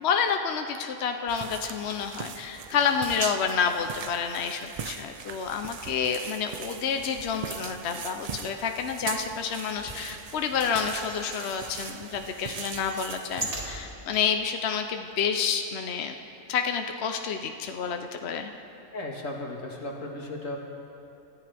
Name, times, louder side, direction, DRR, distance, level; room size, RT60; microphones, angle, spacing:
voice 1, 0.0-16.1 16.5-18.5, left 6 dB, 60° left, 5 dB, 1.0 m, -29 dB
sound 1, 1.3-13.5, right 7 dB, 75° right, 0.3 m, -40 dB
sound 2, 9.8-11.9 12.3-14.2 14.8-14.9 15.1-15.2, right 1 dB, 30° right, 2.1 m, -40 dB
voice 2, 18.9-20.6, left 1 dB, 85° left, 0 dB, 2.2 m, -35 dB
27.0 x 14.0 x 3.5 m, 3.0 s
omnidirectional pair, 1.3 m